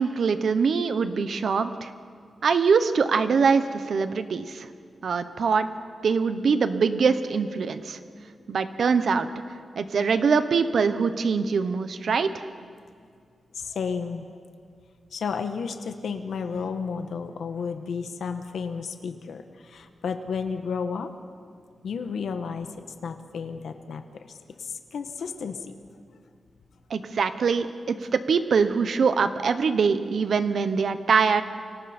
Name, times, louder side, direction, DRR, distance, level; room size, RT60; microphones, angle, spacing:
voice 1, 0.0-1.9 2.4-4.7 5.0-5.7 6.0-8.0 8.5-9.3 9.8-12.4 26.9-31.4, right 5 dB, 60° right, 10 dB, 1.1 m, -23 dB
voice 2, 13.5-14.3 15.1-21.1 21.8-22.7 23.0-24.0 24.6-25.7, left 5 dB, 80° left, 6 dB, 1.3 m, -32 dB
29.5 x 24.5 x 4.4 m, 2.2 s
wide cardioid pair, 180°, 0 cm